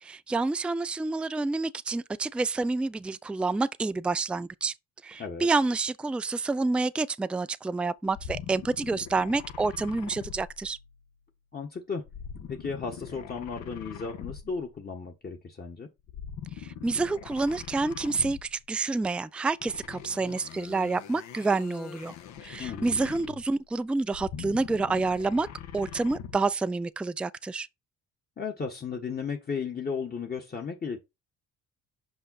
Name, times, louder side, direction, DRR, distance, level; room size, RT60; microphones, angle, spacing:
voice 1, 0.0-4.7 5.0-10.8 16.6-22.1 22.4-25.5 25.7-27.7, right 3 dB, 5° right, 0.3 m, -28 dB
sound 1, 8.1-11.1 12.1-14.8 16.0-18.6 19.6-23.6 24.0-26.5, left 8 dB, 70° left, 1.3 m, -42 dB
voice 2, 11.5-12.0 12.4-15.9 22.6-23.1 28.4-31.0, left 5 dB, 30° left, 1.5 m, -35 dB
5.7 x 5.1 x 4.1 m
cardioid pair, 90°, 31 cm